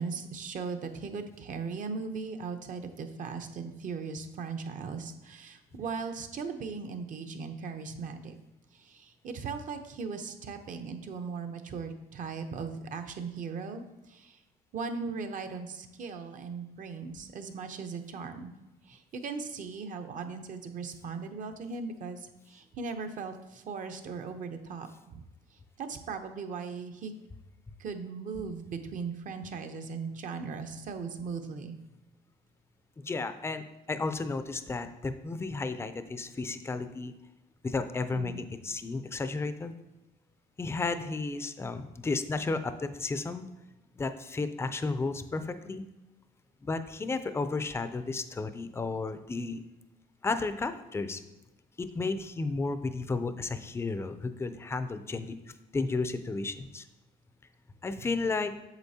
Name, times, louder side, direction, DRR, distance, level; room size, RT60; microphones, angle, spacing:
voice 1, 0.0-8.4 8.7-14.4 14.7-18.5 18.9-25.2 25.8-27.1 27.8-31.8 38.1-38.5, right 5 dB, 50° right, 7 dB, 0.7 m, -38 dB
voice 2, 33.0-37.1 37.6-39.7 40.6-43.4 44.0-45.8 46.6-49.6 50.2-51.2 51.8-55.4 55.7-56.8 57.8-58.5, left 3 dB, 15° left, 10 dB, 0.4 m, -33 dB
8.1 x 6.3 x 2.8 m, 1.0 s
cardioid pair, 110°, 17 cm